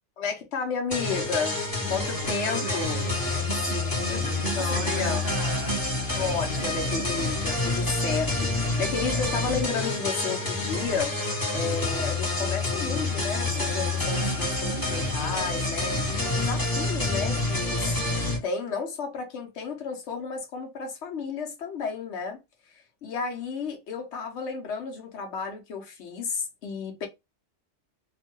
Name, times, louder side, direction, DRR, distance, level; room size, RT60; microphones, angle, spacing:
voice 1, 0.2-1.6 1.9-3.0 4.1-5.2 6.2-11.1 11.5-18.0 18.4-22.4 22.7-27.1, left 5 dB, 70° left, 1.0 m, -32 dB
sound 1, 0.9-18.4, left 2 dB, 20° left, 0.9 m, -28 dB
voice 2, 2.2-5.9 6.4-7.1 14.1-14.9, right 7 dB, 60° right, 0.5 m, -37 dB
2.7 x 2.1 x 2.9 m
omnidirectional pair, 1.2 m